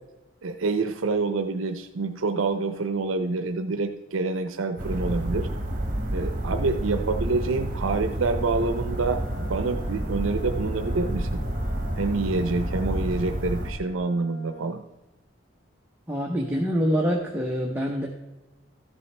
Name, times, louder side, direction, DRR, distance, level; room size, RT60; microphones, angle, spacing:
voice 1, 0.4-5.5 6.1-11.4 12.0-14.8, right 3 dB, 80° right, 8 dB, 0.6 m, -27 dB
sound 1, 4.8-13.7, right 1 dB, 40° right, 1.6 m, -29 dB
Wind instrument woodwind instrument, 8.8-14.9, left 2 dB, 85° left, 2.6 m, -47 dB
voice 2, 16.1-18.1, equal, 10° right, -1 dB, 0.8 m, -25 dB
13.5 x 7.1 x 3.3 m, 1.1 s
head